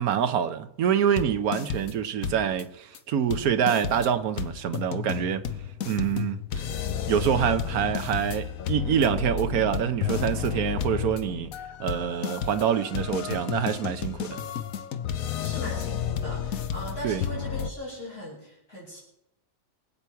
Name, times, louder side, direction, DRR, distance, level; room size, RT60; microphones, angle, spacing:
voice 1, 0.0-5.4 5.8-6.4 7.1-11.5 11.8-14.4 17.0-17.2, right 8 dB, 75° right, 1.3 m, -26 dB
sound 1, 1.2-2.0 2.2-2.6 2.9-3.0 3.3-17.7, left 8 dB, 65° left, 1.2 m, -32 dB
voice 2, 15.4-19.0, equal, 40° left, 5.7 m, -39 dB
24.0 x 8.5 x 4.6 m
omnidirectional pair, 1.6 m